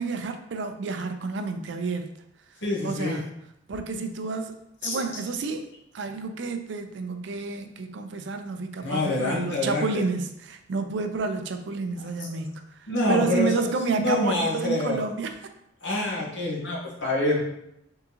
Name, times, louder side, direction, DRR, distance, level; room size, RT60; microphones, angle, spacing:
voice 1, 0.0-2.1 2.8-3.3 3.7-4.6 4.8-5.7 5.9-15.5, right 4 dB, 70° right, 7 dB, 0.4 m, -30 dB
voice 2, 2.6-3.2 4.8-4.9 8.8-10.0 12.9-13.7 14.0-15.0 15.8-17.4, left 2 dB, 65° left, -4 dB, 1.1 m, -26 dB
3.6 x 3.6 x 2.9 m, 0.79 s
head